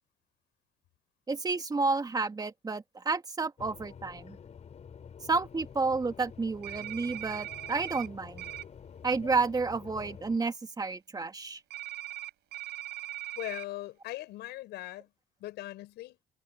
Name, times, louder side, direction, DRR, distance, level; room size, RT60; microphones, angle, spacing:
voice 1, 1.3-4.4 5.3-8.5 9.0-11.6, right 4 dB, 20° right, 2.6 m, -31 dB
sound 1, 3.6-10.4, left 7 dB, 40° left, 5.0 m, -48 dB
sound 2, 6.6-8.1 8.4-8.6 11.7-13.7, right 16 dB, 80° right, 6.2 m, -40 dB
voice 2, 13.4-15.1 15.4-16.2, left 16 dB, 80° left, 7.5 m, -40 dB
cardioid pair, 110°, 17 cm